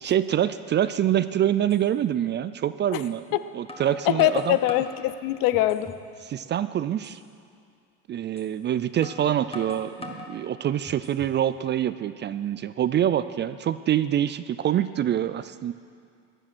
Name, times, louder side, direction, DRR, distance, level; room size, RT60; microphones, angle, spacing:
voice 1, 0.0-3.2 3.5-4.6 6.2-7.2 8.1-15.7, right 11 dB, 30° right, 14 dB, 0.4 m, -25 dB
sound 1, 1.7-1.8 3.0-3.2 3.7-5.0 5.5-6.1 6.4-6.5 7.0-7.2 8.4-8.5 9.0-10.3 10.8-11.4, left 3 dB, 15° left, 1.6 m, -41 dB
voice 2, 4.1-5.9, left 14 dB, 65° left, 12 dB, 0.7 m, -23 dB
15.5 x 10.0 x 6.1 m, 2.3 s
supercardioid pair, 95°, 37 cm